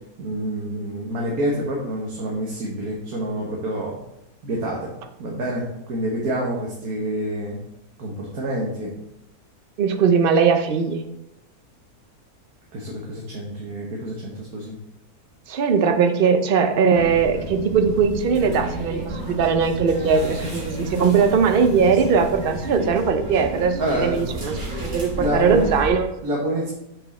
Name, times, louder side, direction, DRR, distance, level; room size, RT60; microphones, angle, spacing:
voice 1, 0.2-4.0 4.4-4.9 5.2-7.6 8.0-8.9 12.7-14.8 23.8-24.2 25.1-25.7 26.2-26.7, right 1 dB, 70° right, -3 dB, 1.7 m, -27 dB
voice 2, 9.8-11.0 15.5-26.1, right 6 dB, 55° right, 7 dB, 0.6 m, -20 dB
sound 1, 16.9-25.9, right 1 dB, 35° right, 1.6 m, -31 dB
6.2 x 5.5 x 4.2 m, 0.85 s
omnidirectional pair, 1.6 m